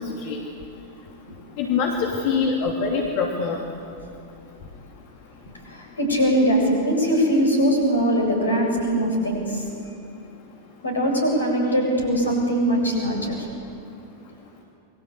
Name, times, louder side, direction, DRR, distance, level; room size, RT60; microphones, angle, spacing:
voice 1, 1.6-3.6, left 5 dB, 45° left, 1 dB, 3.0 m, -24 dB
voice 2, 5.7-9.6 10.8-13.5, equal, 75° left, 1 dB, 8.0 m, -21 dB
29.0 x 23.5 x 8.3 m, 2.5 s
figure-of-eight pair, 90°, 0 cm